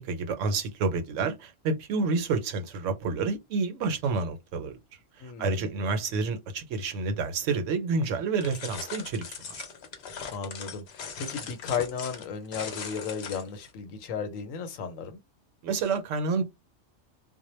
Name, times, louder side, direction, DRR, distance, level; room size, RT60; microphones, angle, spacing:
voice 1, 0.0-4.8 5.2-9.6 15.6-16.4, right 4 dB, 75° right, 0.9 m, -29 dB
voice 2, 5.2-5.7 10.3-15.2, left 6 dB, 85° left, 1.0 m, -34 dB
sound 1, 8.4-13.7, left 6 dB, 60° left, 0.8 m, -40 dB
2.2 x 2.1 x 3.0 m
omnidirectional pair, 1.3 m